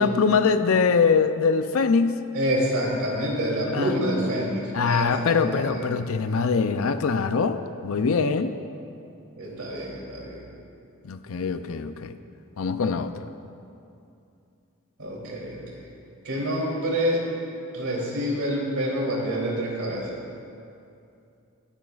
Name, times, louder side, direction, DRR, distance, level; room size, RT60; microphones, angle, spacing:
voice 1, 0.0-2.2 3.7-4.0 4.7-8.6 11.0-12.1 12.6-13.3, left 5 dB, 65° left, 9 dB, 0.5 m, -23 dB
voice 2, 2.3-5.9 9.4-10.4 15.0-15.8 16.2-17.2 17.7-20.1, equal, 80° right, -3 dB, 3.0 m, -27 dB
26.0 x 9.0 x 2.4 m, 2.6 s
head